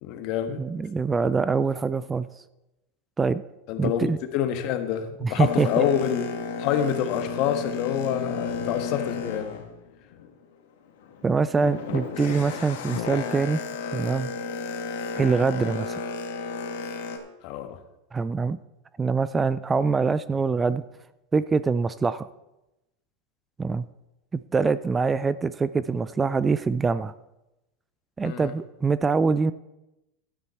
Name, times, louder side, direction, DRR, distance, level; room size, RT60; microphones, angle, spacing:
voice 1, 0.0-0.6 3.7-6.2 6.6-9.6 17.4-17.8 28.2-28.5, left 9 dB, 50° left, 7 dB, 1.3 m, -27 dB
voice 2, 0.6-2.3 3.2-3.4 3.8-4.2 5.2-5.8 11.2-13.6 13.9-14.3 15.2-16.0 18.1-18.6 19.0-20.8 21.3-22.3 23.6-23.9 24.3-27.1 28.2-29.5, right 4 dB, 15° right, 15 dB, 0.3 m, -24 dB
Boat Water vehicle, 5.4-10.4 10.9-17.2, left 5 dB, 75° left, 1.8 m, -33 dB
12.5 x 9.3 x 4.3 m, 0.94 s
supercardioid pair, 135°, 0 cm